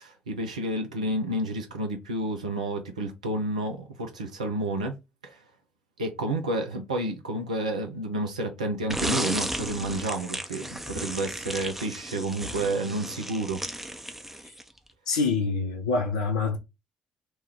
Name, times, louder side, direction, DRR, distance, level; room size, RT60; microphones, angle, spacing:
voice 1, 0.0-4.9 5.2-5.4 6.0-13.6, right 1 dB, 80° right, 0.5 m, -30 dB
sound 1, 8.9-14.8, right 1 dB, 5° right, 0.5 m, -34 dB
voice 2, 15.1-16.6, left 4 dB, 75° left, 0.5 m, -26 dB
3.0 x 2.2 x 3.4 m
figure-of-eight pair, 45°, 4 cm